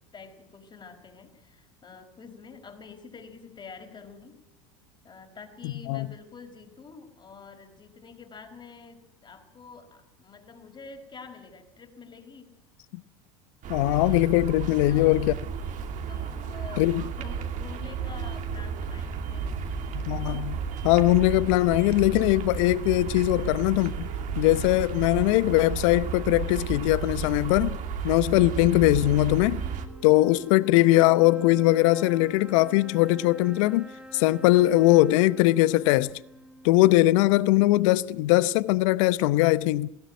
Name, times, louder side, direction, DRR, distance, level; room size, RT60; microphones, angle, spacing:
voice 1, 0.0-4.4 5.0-12.5 14.6-15.3 16.1-19.6 28.4-28.7, left 5 dB, 25° left, 4.7 m, -47 dB
voice 2, 5.6-6.1 13.7-15.3 16.8-17.1 19.9-24.1 24.4-27.8 28.0-29.6 30.0-36.2 36.6-39.9, left 17 dB, 65° left, 0.8 m, -21 dB
sound 1, 13.6-29.9, right 6 dB, 50° right, 2.9 m, -33 dB
sound 2, 18.6-18.9 20.9-21.9 23.9-24.9 26.9-27.9 29.9-30.8, right 9 dB, 85° right, 1.6 m, -50 dB
sound 3, 28.3-37.7, equal, 5° right, 1.8 m, -47 dB
20.0 x 16.5 x 9.3 m
hypercardioid pair, 85°, 17 cm